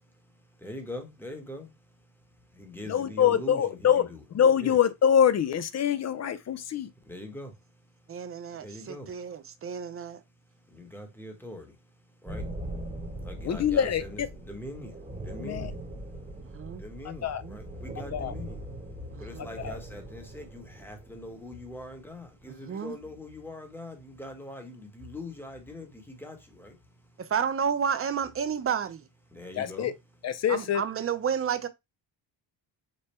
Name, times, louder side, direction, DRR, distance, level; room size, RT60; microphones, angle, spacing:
voice 1, 0.6-1.7 2.6-4.2 4.6-4.8 7.1-7.5 8.6-9.1 10.7-11.7 12.2-12.4 13.2-14.9 15.2-15.7 16.8-18.6 19.2-26.7 29.3-29.9, left 1 dB, 5° left, 1.0 m, -42 dB
voice 2, 2.9-6.9 13.4-14.3 15.4-15.7 17.2-17.4 18.1-18.3 19.6-19.8 29.6-29.9 30.2-30.8, left 8 dB, 40° left, 0.4 m, -25 dB
voice 3, 8.1-10.2 16.4-16.8 17.4-17.6 19.1-19.5 22.5-23.0 27.2-29.0 30.5-31.7, right 7 dB, 30° right, 0.5 m, -31 dB
sound 1, 12.3-22.5, right 1 dB, 15° right, 1.1 m, -41 dB
5.3 x 2.1 x 4.3 m
cardioid pair, 125°, 46 cm